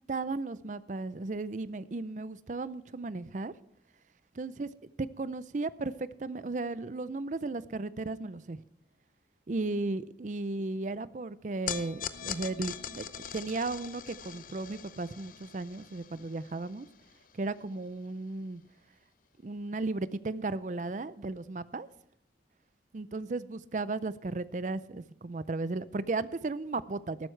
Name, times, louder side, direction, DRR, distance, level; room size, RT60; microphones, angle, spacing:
voice 1, 0.1-3.5 4.4-4.7 5.0-8.6 9.5-13.1 13.3-16.9 17.3-18.6 19.4-21.9 22.9-27.3, right 3 dB, 45° right, 16 dB, 0.5 m, -35 dB
sound 1, 11.7-18.1, left 8 dB, 50° left, 0.6 m, -42 dB
14.0 x 12.0 x 3.3 m, 0.78 s
head